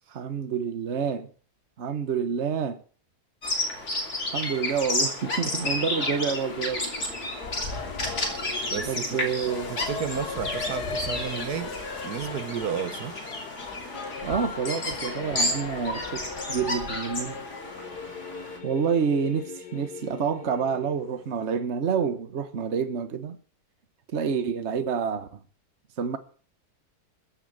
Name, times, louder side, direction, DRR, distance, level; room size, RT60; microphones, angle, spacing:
voice 1, 0.1-1.3 1.8-2.8 4.2-6.8 8.9-9.7 14.2-17.4 18.6-23.4 24.1-25.4 26.0-26.2, right 6 dB, 50° right, 1.4 m, -28 dB
Bird vocalization bird call bird song, 3.4-18.6, left 1 dB, 45° left, 3.3 m, -32 dB
Singing / Musical instrument, 5.2-21.5, left 5 dB, 85° left, 2.1 m, -38 dB
voice 2, 8.7-11.8 12.0-13.2, right 8 dB, 80° right, 1.6 m, -33 dB
15.0 x 7.7 x 8.7 m
omnidirectional pair, 1.7 m